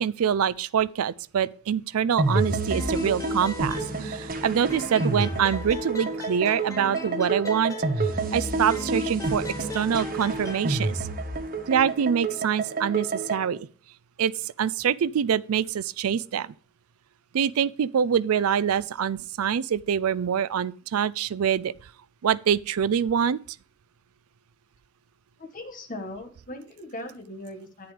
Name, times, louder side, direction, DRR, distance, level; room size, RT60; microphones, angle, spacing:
voice 1, 0.0-9.4 9.7-11.1 11.7-13.7 14.2-16.5 17.3-21.7 22.2-23.4, right 8 dB, 80° right, 0.4 m, -25 dB
sound 1, 2.2-13.5, right 2 dB, 40° right, 1.2 m, -29 dB
sound 2, 2.7-4.4 4.7-8.3 8.7-10.7, left 1 dB, 15° left, 1.2 m, -38 dB
voice 2, 25.4-27.9, left 1 dB, 35° left, 1.7 m, -39 dB
10.5 x 9.3 x 3.3 m
head